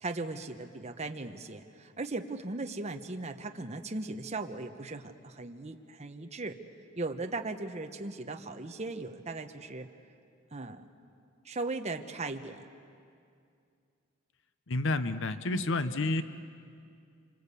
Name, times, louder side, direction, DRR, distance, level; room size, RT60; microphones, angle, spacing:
voice 1, 0.0-6.6 7.0-9.9 10.5-11.1 11.4-12.6 15.5-15.7, right 3 dB, 35° right, 5 dB, 1.0 m, -38 dB
voice 2, 14.7-16.2, left 2 dB, 65° left, 12 dB, 0.9 m, -30 dB
26.5 x 26.0 x 8.3 m, 2.4 s
head